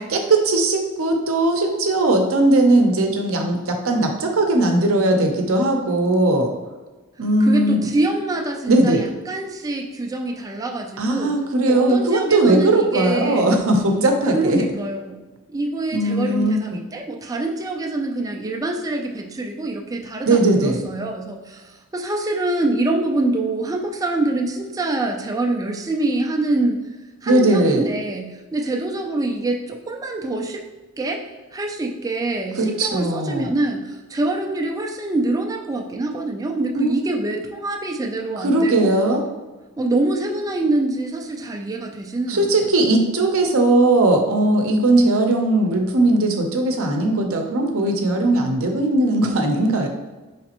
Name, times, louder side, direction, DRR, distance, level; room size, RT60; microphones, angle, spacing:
voice 1, 0.1-6.5 7.2-7.9 8.7-9.0 11.0-14.6 15.9-16.8 20.3-20.8 27.3-27.8 32.6-33.5 36.7-36.9 38.4-39.2 42.3-49.9, right 2 dB, 65° right, 3 dB, 0.7 m, -18 dB
voice 2, 7.4-11.4 11.6-13.6 14.3-15.2 15.5-26.8 27.2-30.6 31.0-31.2 31.5-38.9 39.8-42.5, right 2 dB, 15° right, 2 dB, 0.4 m, -25 dB
5.0 x 3.2 x 2.9 m, 1.2 s
head